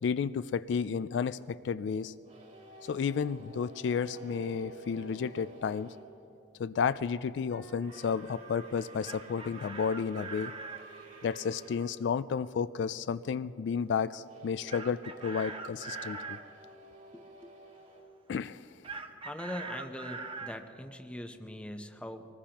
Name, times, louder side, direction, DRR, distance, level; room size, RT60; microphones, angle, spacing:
voice 1, 0.0-2.1 2.8-5.9 6.6-10.5 11.2-16.4 18.3-18.6, left 6 dB, 70° left, 14 dB, 0.3 m, -32 dB
sound 1, 2.2-6.1 7.8-11.9 14.2-19.1, right 2 dB, 50° right, 3.2 m, -52 dB
sound 2, 4.1-6.8 7.5-8.4, right 5 dB, 70° right, 1.4 m, -51 dB
Chicken rooster, 8.8-10.9 14.7-16.4 18.8-20.6, right 4 dB, 30° right, 0.8 m, -42 dB
voice 2, 17.1-17.5 19.2-22.3, left 1 dB, 5° left, 6 dB, 0.8 m, -41 dB
24.5 x 19.5 x 2.9 m, 2.7 s
head